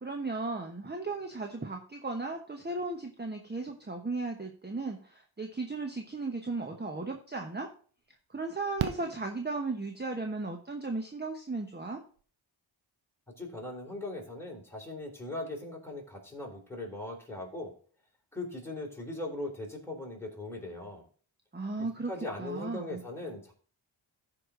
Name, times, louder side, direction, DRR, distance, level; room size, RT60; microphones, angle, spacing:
voice 1, 0.0-7.7 8.3-12.0 21.5-22.1 22.4-23.0, right 3 dB, 20° right, 4 dB, 1.1 m, -36 dB
Fireworks, 7.1-7.2 8.8-10.1 11.9-12.0 12.2-12.3, right 10 dB, 85° right, 0.7 m, -36 dB
voice 2, 13.4-17.7 18.3-21.0 21.8-23.5, left 2 dB, 5° left, -1 dB, 3.7 m, -39 dB
14.5 x 5.0 x 3.8 m, 0.42 s
cardioid pair, 60°, 47 cm